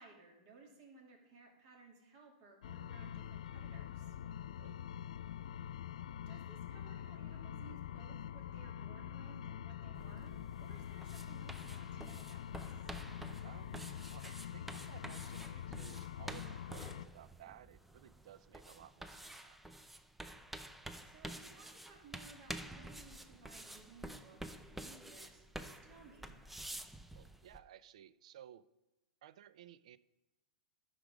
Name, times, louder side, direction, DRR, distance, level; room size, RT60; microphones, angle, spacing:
voice 1, 0.0-4.1 6.3-12.9 21.0-26.3, right 3 dB, 50° right, 0 dB, 2.7 m, -59 dB
sound 1, 2.6-17.1, left 10 dB, 75° left, 0.3 m, -45 dB
sound 2, 9.9-27.6, right 1 dB, 5° right, 0.4 m, -50 dB
voice 2, 13.4-19.6 27.1-28.7 29.2-30.0, right 11 dB, 65° right, 17 dB, 0.4 m, -58 dB
12.0 x 5.1 x 4.9 m, 1.0 s
hypercardioid pair, 140°, 4 cm